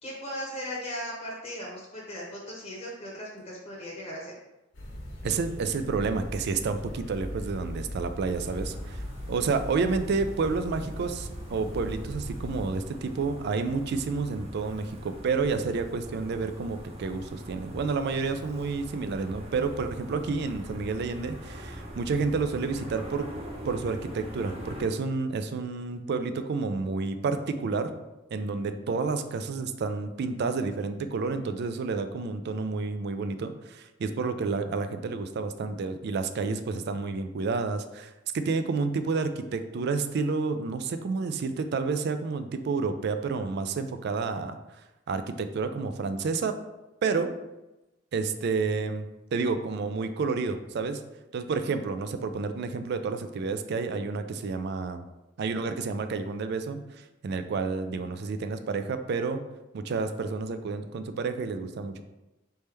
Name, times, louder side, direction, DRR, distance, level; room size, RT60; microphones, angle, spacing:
voice 1, 0.0-4.3, equal, 35° left, -4 dB, 0.9 m, -37 dB
sound 1, 4.7-12.7, equal, 75° left, 1.2 m, -39 dB
voice 2, 5.2-9.0 9.3-23.3 23.6-27.9 28.3-44.6 45.1-46.5 47.0-47.3 48.1-49.1 49.3-51.0 51.3-55.0 55.4-56.8 57.2-59.4 59.7-62.0, right 4 dB, 55° right, 10 dB, 0.4 m, -30 dB
sound 2, 8.3-24.8, equal, 30° right, 0.9 m, -43 dB
4.2 x 3.5 x 3.3 m, 1.0 s
head